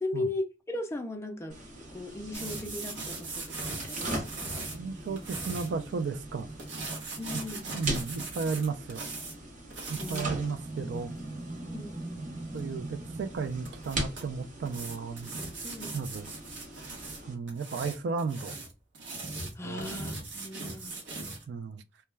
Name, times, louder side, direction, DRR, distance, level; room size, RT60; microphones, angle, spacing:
voice 1, 0.0-1.6 1.9-4.7 7.2-7.7 10.0-10.6 11.6-12.0 15.6-16.0 19.6-21.0, left 2 dB, 15° left, 0.4 m, -37 dB
sound 1, 1.5-17.3, right 1 dB, 40° right, 0.8 m, -40 dB
sound 2, 2.3-5.7 6.6-9.4 9.7-10.2 12.6-12.7 13.6-14.2 14.7-17.2 17.5-21.4, right 3 dB, 90° right, 0.9 m, -39 dB
voice 2, 4.7-6.5 7.5-9.1 9.9-11.1 12.5-15.3 15.9-16.3 17.3-18.5 19.6-19.9 21.5-21.8, right 5 dB, 65° right, 0.3 m, -34 dB
2.2 x 2.2 x 3.1 m
head